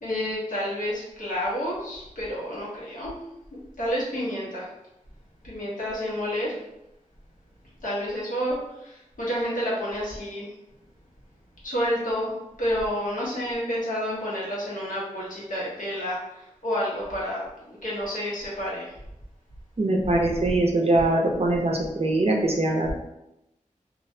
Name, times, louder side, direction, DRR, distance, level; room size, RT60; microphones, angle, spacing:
voice 1, 0.0-3.1 3.5-4.7 5.4-6.5 7.8-8.6 8.8-10.5 11.6-12.3 12.6-16.2 16.6-18.9, equal, 80° left, -6 dB, 0.9 m, -29 dB
voice 2, 19.8-22.9, right 2 dB, 50° right, 0 dB, 0.5 m, -22 dB
2.4 x 2.0 x 2.6 m, 0.88 s
wide cardioid pair, 60°, 13 cm